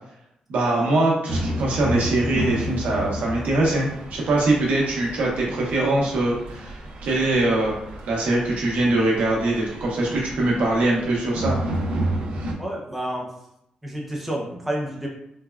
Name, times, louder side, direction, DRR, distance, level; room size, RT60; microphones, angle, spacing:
voice 1, 0.5-7.7 8.1-11.6, right 2 dB, 85° right, -3 dB, 0.8 m, -22 dB
sound 1, 1.3-12.5, right 1 dB, 65° right, 0.4 m, -31 dB
voice 2, 12.6-13.3 13.8-15.1, right 1 dB, 5° right, -3 dB, 0.4 m, -29 dB
3.4 x 2.2 x 2.2 m, 0.79 s
wide cardioid pair, 170°, 2 cm